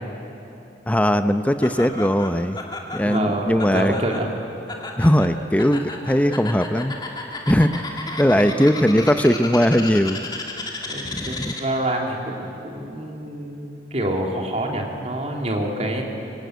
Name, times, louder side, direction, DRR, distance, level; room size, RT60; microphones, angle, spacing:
voice 1, 0.9-2.6 2.9-3.9 5.0-7.0 7.5-10.2 11.0-11.5, equal, 10° left, 9 dB, 0.7 m, -19 dB
Laughter, 1.6-11.9, left 2 dB, 25° left, 2.7 m, -34 dB
voice 2, 3.0-4.3 8.3-8.6 10.9-16.0, right 1 dB, 40° right, 0 dB, 3.3 m, -27 dB
25.0 x 24.5 x 9.5 m, 2.8 s
head